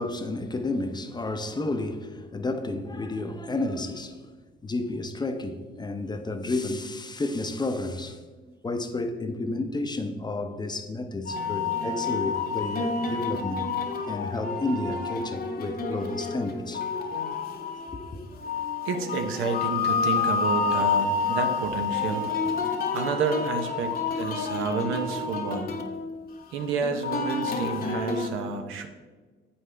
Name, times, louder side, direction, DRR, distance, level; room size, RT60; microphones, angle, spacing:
voice 1, 0.0-4.2 4.6-8.2 8.6-13.7 14.1-16.8 17.8-18.2, left 2 dB, 20° left, 0.6 m, -31 dB
sound 1, 11.3-28.3, left 4 dB, 50° left, 1.0 m, -29 dB
voice 2, 18.8-22.4 22.9-25.7 26.5-28.9, right 5 dB, 90° right, 0.8 m, -30 dB
7.9 x 5.5 x 3.3 m
cardioid pair, 90°, 20 cm